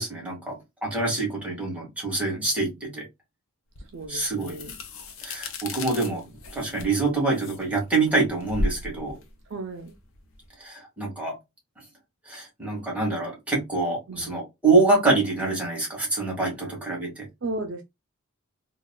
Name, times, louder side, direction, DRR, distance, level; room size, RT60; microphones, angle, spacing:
voice 1, 0.0-3.1 4.1-4.6 5.2-9.2 10.6-11.4 12.3-17.3, right 3 dB, 5° right, 1.8 m, -26 dB
sound 1, 3.8-10.5, left 2 dB, 80° left, 0.8 m, -35 dB
voice 2, 3.9-4.8 9.5-9.9 14.1-14.4 17.4-17.8, right 2 dB, 60° right, 0.5 m, -34 dB
3.9 x 2.4 x 2.2 m
head